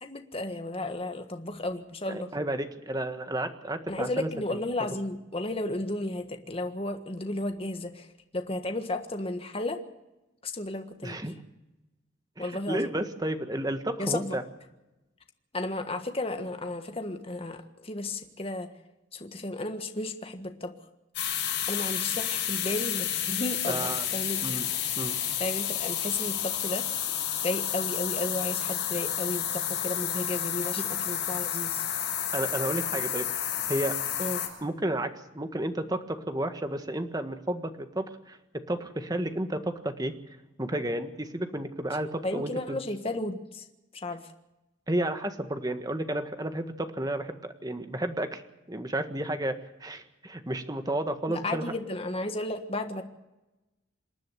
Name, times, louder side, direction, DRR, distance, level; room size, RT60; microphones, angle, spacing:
voice 1, 0.0-2.3 3.9-8.1 8.3-9.8 10.4-11.2 12.4-12.9 14.0-14.4 15.5-18.7 19.1-20.7 21.7-24.7 25.4-26.9 27.4-31.8 34.2-34.5 42.2-43.6 43.9-44.2 51.3-53.0, left 2 dB, 30° left, 6 dB, 1.5 m, -33 dB
voice 2, 2.1-4.6 11.0-11.3 12.4-14.4 23.7-24.0 24.4-24.7 25.0-25.2 32.3-33.3 33.7-33.9 34.6-40.1 40.6-42.8 44.9-48.4 48.7-51.7, right 1 dB, 20° right, 8 dB, 1.6 m, -32 dB
sound 1, 21.1-34.5, left 10 dB, 60° left, 6.7 m, -30 dB
27.5 x 10.5 x 9.4 m, 0.98 s
head